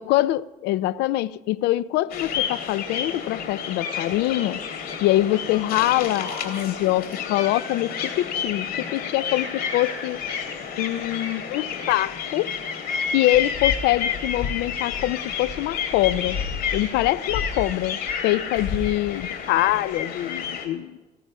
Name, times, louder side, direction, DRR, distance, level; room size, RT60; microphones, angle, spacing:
voice 1, 0.0-4.6 5.0-10.2 10.8-12.5 13.1-16.4 16.7-18.0 18.2-21.0, left 15 dB, 90° left, 0.5 m, -24 dB
sound 1, 2.1-20.7, left 7 dB, 60° left, 3.2 m, -30 dB
17.0 x 15.0 x 5.5 m
cardioid pair, 110°, 17 cm